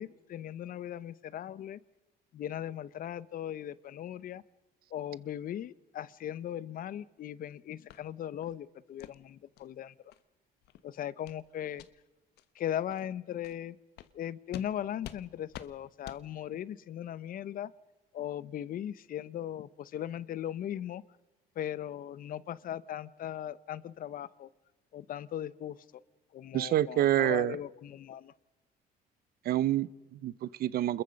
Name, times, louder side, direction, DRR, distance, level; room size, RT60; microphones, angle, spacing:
voice 1, 0.0-1.8 2.3-4.4 4.9-9.9 10.8-11.8 12.5-13.8 14.1-17.7 18.1-21.0 21.6-24.5 24.9-25.8 26.3-28.3, left 11 dB, 55° left, 18 dB, 0.9 m, -38 dB
sound 1, 7.9-8.0 8.4-8.6 9.0-9.1 9.6-9.7 10.1-10.2 10.6-10.8 11.2-11.4 11.7-11.9 12.4-12.5 12.9-13.0 13.4-13.6 14.0-14.1 14.5-14.7 15.0-15.2 15.5-15.7 16.0-16.2, left 13 dB, 80° left, 1.2 m, -47 dB
voice 2, 26.5-27.6 29.4-31.0, right 13 dB, 65° right, 20 dB, 0.8 m, -28 dB
27.5 x 21.5 x 5.3 m, 1.1 s
cardioid pair, 110°, 17 cm